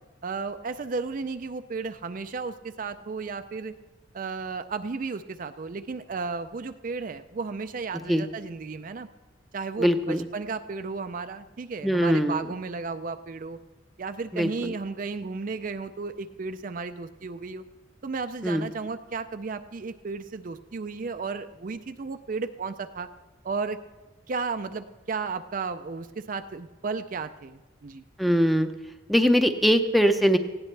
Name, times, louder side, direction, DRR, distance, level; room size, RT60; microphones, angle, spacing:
voice 1, 0.2-3.7 4.1-9.1 9.5-13.6 14.0-17.6 18.0-23.1 23.4-23.8 24.3-28.0, right 4 dB, 45° right, 9 dB, 0.4 m, -34 dB
voice 2, 9.8-10.3 11.8-12.5 14.3-14.7 18.4-18.7 28.2-28.7 29.1-30.4, equal, ahead, 7 dB, 0.6 m, -22 dB
18.5 x 15.5 x 3.3 m, 1.2 s
head